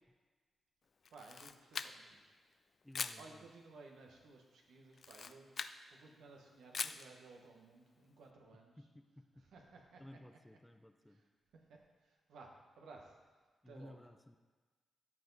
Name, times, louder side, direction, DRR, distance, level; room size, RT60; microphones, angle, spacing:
Camera, 1.0-2.2 2.9-3.2 4.9-5.8 6.7-7.1, left 5 dB, 55° left, 0.4 m, -42 dB
voice 1, 1.1-2.2 3.2-8.9 9.3-10.2 11.0-11.3 11.5-13.2 13.7-14.0, right 3 dB, 85° right, 1 dB, 1.3 m, -58 dB
voice 2, 2.8-3.5 8.8-9.4 10.0-11.2 13.6-14.4, left 1 dB, 10° left, 8 dB, 0.6 m, -56 dB
13.0 x 4.9 x 4.1 m, 1.4 s
cardioid pair, 60°, 0 cm